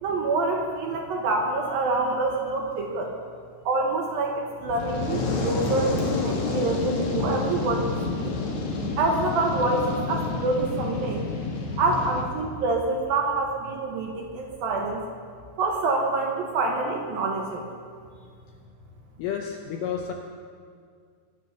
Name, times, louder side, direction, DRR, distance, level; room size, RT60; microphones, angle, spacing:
voice 1, 0.0-3.1 3.7-8.3 9.0-11.3 11.8-15.0 15.6-17.6, right 3 dB, 70° right, 1 dB, 2.4 m, -26 dB
Fire, 4.6-12.2, left 3 dB, 55° left, 2.3 m, -29 dB
voice 2, 19.2-20.1, left 8 dB, 75° left, 2 dB, 2.3 m, -30 dB
22.0 x 8.1 x 5.8 m, 2.2 s
omnidirectional pair, 5.2 m